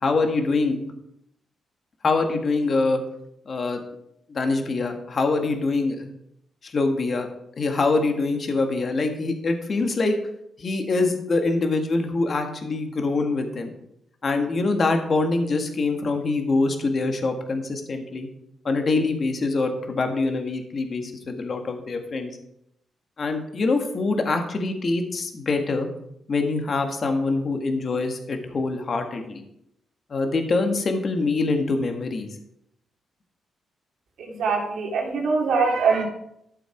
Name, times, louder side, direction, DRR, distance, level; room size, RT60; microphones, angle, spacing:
voice 1, 0.0-0.9 2.0-3.0 3.5-3.8 4.3-6.1 6.6-7.3 7.6-10.2 10.6-13.7 14.2-18.3 18.6-22.3 23.2-25.9 26.3-29.4 30.1-32.3, left 3 dB, 45° left, 5 dB, 1.8 m, -24 dB
voice 2, 34.4-36.0, right 4 dB, 80° right, 0 dB, 2.6 m, -22 dB
13.0 x 6.9 x 4.6 m, 0.77 s
cardioid pair, 90°, 0 cm